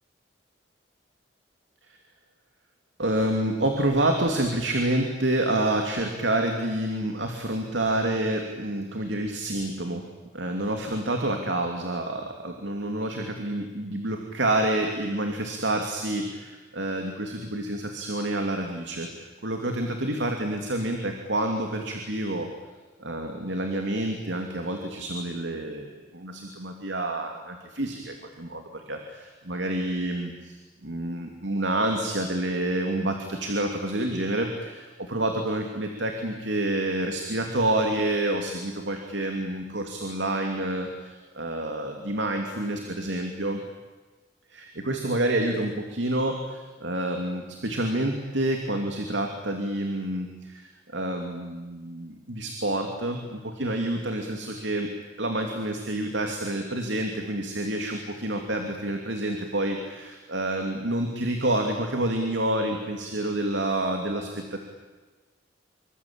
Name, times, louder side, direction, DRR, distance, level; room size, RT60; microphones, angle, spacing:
voice 1, 3.0-10.0 10.3-22.5 23.0-30.5 30.8-43.6 44.5-54.9 55.2-64.6, right 1 dB, 80° right, 4 dB, 2.8 m, -28 dB
26.5 x 24.5 x 8.9 m, 1.3 s
head